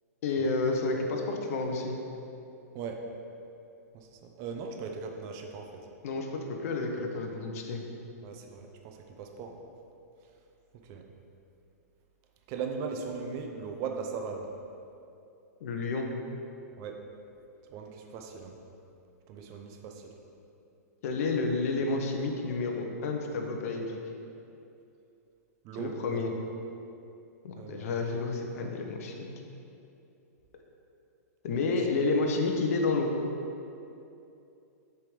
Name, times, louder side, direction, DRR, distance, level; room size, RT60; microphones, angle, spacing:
voice 1, 0.2-2.0 6.0-7.8 15.6-16.1 21.0-24.0 25.8-26.3 27.4-29.3 31.4-33.1, left 3 dB, 60° left, 2 dB, 0.9 m, -30 dB
voice 2, 2.7-3.0 3.9-5.8 8.2-9.6 10.8-11.0 12.5-14.5 16.8-17.0 17.7-18.5 19.3-20.1 25.6-26.2 27.6-27.9 31.8-31.9, right 5 dB, 35° right, 3 dB, 0.7 m, -39 dB
6.6 x 3.6 x 5.0 m, 2.8 s
hypercardioid pair, 135°, 9 cm